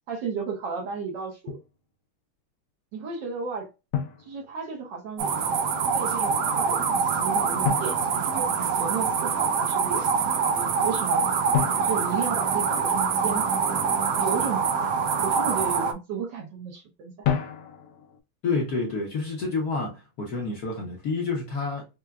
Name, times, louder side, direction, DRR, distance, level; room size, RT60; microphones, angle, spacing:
voice 1, 0.1-1.6 2.9-3.7 4.2-5.3 5.9-8.5 8.8-11.2 11.8-13.8 14.2-14.6 15.2-17.3, right 6 dB, 65° right, 1.2 m, -33 dB
Drum, 1.5-1.8 3.9-5.1 7.6-9.1 11.5-13.2 17.2-18.2, left 9 dB, 80° left, 1.5 m, -31 dB
sound 1, 5.2-15.9, right 6 dB, 85° right, 0.9 m, -25 dB
voice 2, 18.4-21.9, left 4 dB, 65° left, 1.0 m, -29 dB
4.6 x 2.1 x 2.2 m
omnidirectional pair, 2.4 m